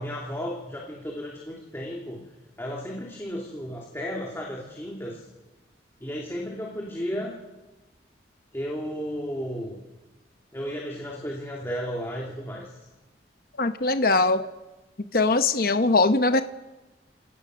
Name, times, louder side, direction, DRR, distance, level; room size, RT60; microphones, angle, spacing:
voice 1, 0.0-2.2 2.6-5.2 6.0-7.4 8.5-9.8 10.5-12.8, equal, 15° left, -2 dB, 2.8 m, -33 dB
voice 2, 13.6-14.5 15.1-16.4, left 3 dB, 55° left, 9 dB, 0.9 m, -21 dB
29.5 x 17.5 x 6.5 m, 1.1 s
head